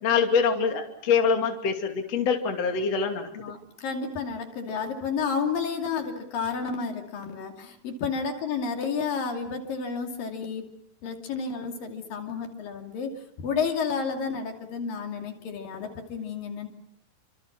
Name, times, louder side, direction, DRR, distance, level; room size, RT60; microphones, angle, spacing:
voice 1, 0.0-3.3, left 6 dB, 50° left, 3 dB, 3.6 m, -24 dB
voice 2, 3.3-10.8 11.0-16.7, left 5 dB, 70° left, 3 dB, 4.3 m, -31 dB
29.5 x 26.0 x 6.1 m, 0.67 s
omnidirectional pair, 4.1 m